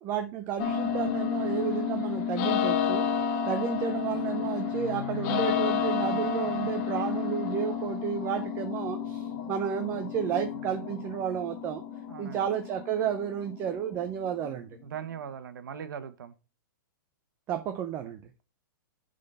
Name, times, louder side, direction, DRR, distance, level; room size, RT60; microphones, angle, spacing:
voice 1, 0.0-3.1 3.5-11.8 12.2-14.7 17.5-18.2, right 9 dB, 20° right, 8 dB, 0.5 m, -32 dB
sound 1, 0.6-14.5, left 8 dB, 30° left, 0.9 m, -31 dB
voice 2, 12.1-12.5 14.8-16.3, right 8 dB, 70° right, 12 dB, 1.0 m, -40 dB
7.3 x 4.0 x 5.4 m, 0.32 s
hypercardioid pair, 165°, 11 cm